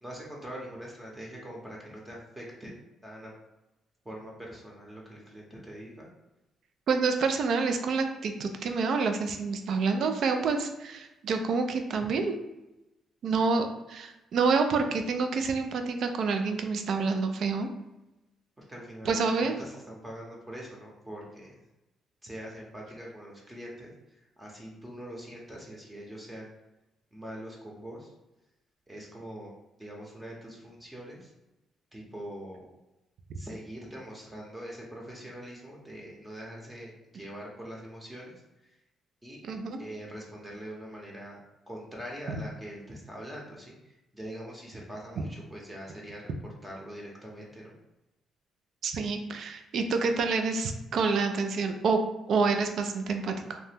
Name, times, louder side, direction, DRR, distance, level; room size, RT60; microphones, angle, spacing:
voice 1, 0.0-2.7 3.0-3.3 4.0-6.1 18.6-21.5 22.2-26.5 27.1-28.1 28.9-29.5 29.8-31.3 31.9-32.6 33.4-38.3 38.6-38.7 39.2-39.4 39.8-41.4 41.7-46.3 46.6-47.7, equal, 15° right, -3 dB, 0.8 m, -43 dB
voice 2, 6.9-12.4 13.2-17.7 19.1-19.5 39.4-39.8 42.3-42.4 48.8-52.0 52.3-53.6, right 4 dB, 65° right, 6 dB, 0.4 m, -28 dB
2.8 x 2.1 x 3.4 m, 0.96 s
cardioid pair, 90°, 0 cm